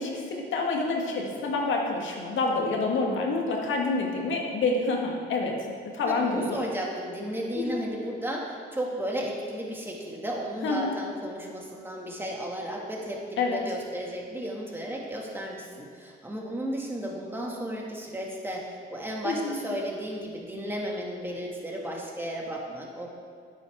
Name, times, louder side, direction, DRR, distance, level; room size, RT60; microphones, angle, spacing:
voice 1, 0.0-5.5 5.9-6.6 7.5-7.8 10.6-10.9 13.4-13.6 19.2-19.6, left 3 dB, 75° left, 0 dB, 1.7 m, -27 dB
voice 2, 6.1-23.1, equal, 10° right, -2 dB, 2.0 m, -34 dB
10.5 x 9.3 x 3.6 m, 2.3 s
cardioid pair, 90°, 20 cm